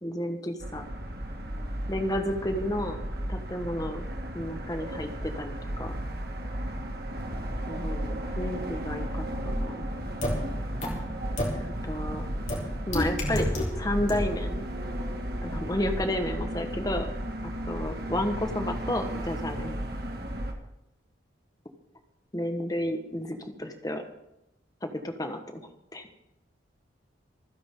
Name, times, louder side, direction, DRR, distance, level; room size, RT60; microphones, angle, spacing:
voice 1, 0.0-0.8 1.9-3.0 3.3-4.1 4.3-5.9 7.7-9.1 9.4-9.8 11.6-12.2 12.9-13.5 13.8-14.7 15.4-17.1 17.4-19.8 22.3-24.0 24.8-26.1, left 1 dB, 20° left, 6 dB, 1.4 m, -32 dB
sound 1, 0.6-20.5, equal, 55° right, 1.9 m, -34 dB
sound 2, 10.2-10.3 10.8-10.9 11.4-11.5 12.5-12.6 12.9-13.6 14.1-14.2, left 1 dB, 40° left, 3.7 m, -27 dB
26.5 x 9.9 x 3.8 m, 0.86 s
head